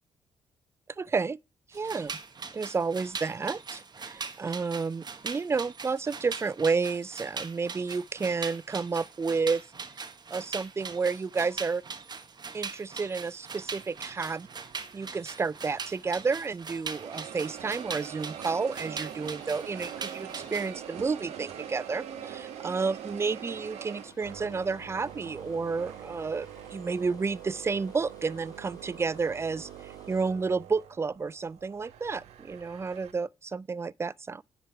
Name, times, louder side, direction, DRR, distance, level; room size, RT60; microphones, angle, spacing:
voice 1, 1.0-1.4 1.7-2.1 2.5-9.6 10.3-11.8 12.5-14.5 14.9-34.4, right 4 dB, 25° right, 0.3 m, -31 dB
sound 1, 1.7-20.7, right 5 dB, 40° right, 1.0 m, -41 dB
sound 2, 13.7-16.5 16.9-33.1, right 10 dB, 75° right, 1.0 m, -44 dB
sound 3, 19.3-30.3, left 2 dB, 35° left, 2.7 m, -56 dB
9.6 x 3.9 x 4.5 m
supercardioid pair, 55°, 11 cm